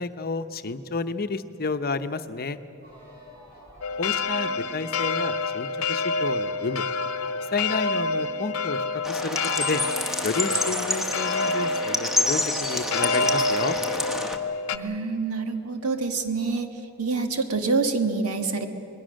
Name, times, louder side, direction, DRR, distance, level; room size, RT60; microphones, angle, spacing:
voice 1, 0.0-2.6 4.0-6.8 7.5-9.8 10.2-13.8, left 3 dB, 45° left, 10 dB, 0.8 m, -30 dB
sound 1, 2.8-8.0, equal, 40° right, 7.7 m, -51 dB
sound 2, 3.8-14.8, left 3 dB, 70° left, 0.8 m, -28 dB
sound 3, 9.0-14.4, left 2 dB, ahead, 1.2 m, -28 dB
voice 2, 14.7-16.7 17.0-18.7, right 4 dB, 75° right, 6 dB, 1.6 m, -26 dB
27.0 x 20.0 x 6.4 m, 2.9 s
head